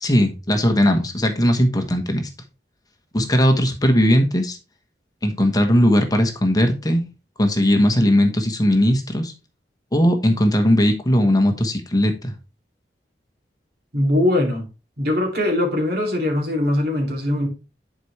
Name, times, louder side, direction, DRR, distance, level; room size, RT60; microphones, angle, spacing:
voice 1, 0.0-2.3 3.1-4.6 5.2-7.0 7.4-9.3 9.9-12.3, equal, 20° left, 5 dB, 1.1 m, -18 dB
voice 2, 13.9-14.7 15.0-17.5, left 1 dB, 65° right, 2 dB, 2.5 m, -21 dB
10.0 x 4.8 x 3.1 m, 0.29 s
head